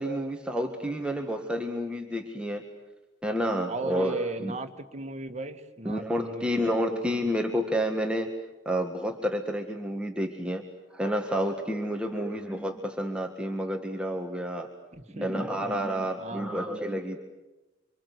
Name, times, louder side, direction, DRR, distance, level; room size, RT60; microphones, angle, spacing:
voice 1, 0.0-2.6 3.2-4.6 5.9-8.3 8.7-10.6 10.9-14.7 15.1-17.2, equal, 5° right, 2 dB, 1.8 m, -30 dB
voice 2, 3.7-7.0 15.0-15.5 16.2-16.7, right 2 dB, 40° right, 6 dB, 2.0 m, -37 dB
27.0 x 26.0 x 8.3 m, 1.1 s
head